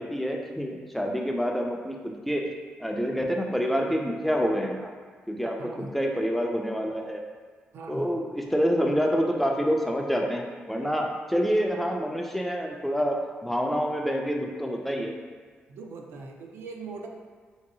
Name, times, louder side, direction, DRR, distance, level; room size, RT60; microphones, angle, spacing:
voice 1, 0.0-2.6 2.8-4.9 5.3-7.2 7.9-15.1, equal, 5° left, 1 dB, 0.3 m, -27 dB
voice 2, 5.6-6.0 7.7-8.2 15.7-17.1, right 3 dB, 85° right, 1 dB, 0.4 m, -40 dB
3.0 x 2.7 x 2.6 m, 1.5 s
cardioid pair, 100°, 4 cm